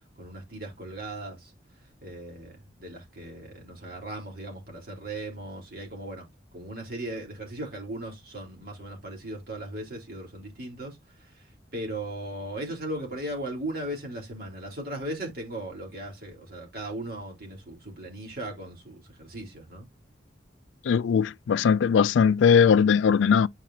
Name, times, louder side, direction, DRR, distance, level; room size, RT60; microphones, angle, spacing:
voice 1, 0.2-1.5 2.0-6.2 6.5-11.5 11.7-19.9, right 1 dB, 50° right, 3.9 m, -37 dB
voice 2, 20.8-23.5, left 6 dB, 80° left, 0.3 m, -20 dB
9.3 x 4.9 x 2.7 m
head